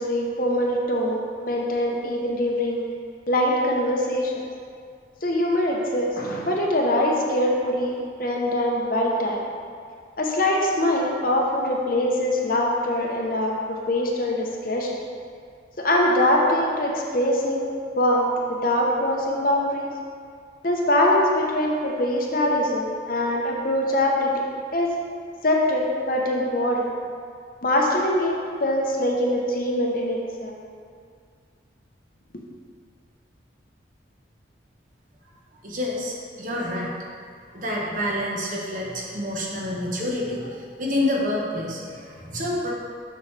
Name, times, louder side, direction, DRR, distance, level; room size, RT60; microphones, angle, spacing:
voice 1, 0.0-2.8 3.3-4.3 5.2-9.4 10.2-15.0 15.8-17.7 18.0-19.9 20.6-24.4 24.7-24.9 25.4-26.9 27.6-30.6, left 1 dB, 45° left, -1 dB, 0.8 m, -23 dB
voice 2, 35.6-36.9 37.5-42.7, left 1 dB, 45° right, -3 dB, 1.0 m, -28 dB
6.6 x 6.4 x 3.2 m, 2.2 s
head